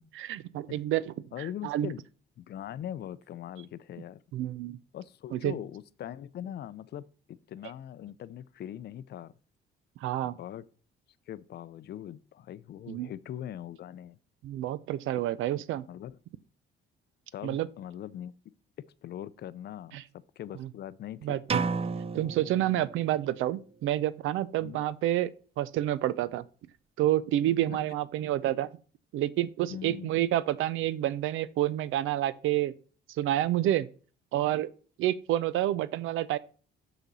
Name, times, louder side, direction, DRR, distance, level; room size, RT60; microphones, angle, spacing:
voice 1, 0.1-1.1 1.6-1.9 4.3-4.8 5.3-5.5 10.0-10.3 12.9-13.1 14.4-15.9 17.4-17.7 19.9-20.0 20.6-20.7 21.2-21.6 22.1-25.3 25.6-26.4 27.0-28.7 29.1-32.7 33.2-33.9 34.3-34.7 35.0-36.4, right 13 dB, 85° right, 0.5 m, -28 dB
voice 2, 1.3-2.0 2.4-4.2 4.9-9.3 10.2-10.6 11.3-14.2 15.9-16.2 17.3-18.3 19.0-21.4 24.6-24.8 27.7-27.8 29.7-30.2, left 11 dB, 55° left, 0.5 m, -41 dB
sound 1, 21.5-23.4, right 5 dB, 30° right, 0.5 m, -32 dB
6.7 x 3.9 x 6.1 m
cardioid pair, 90°, 20 cm